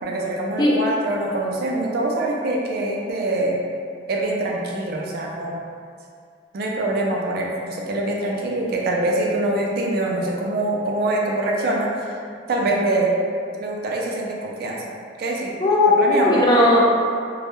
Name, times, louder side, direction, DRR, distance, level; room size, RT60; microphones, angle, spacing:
voice 1, 0.0-3.6 4.1-5.6 6.5-12.1 12.5-13.1 13.6-14.8 15.2-15.5 16.0-16.5, right 2 dB, 55° right, -2 dB, 0.4 m, -24 dB
voice 2, 15.6-16.8, left 2 dB, 25° left, -5 dB, 0.4 m, -16 dB
2.2 x 2.1 x 2.9 m, 2.3 s
head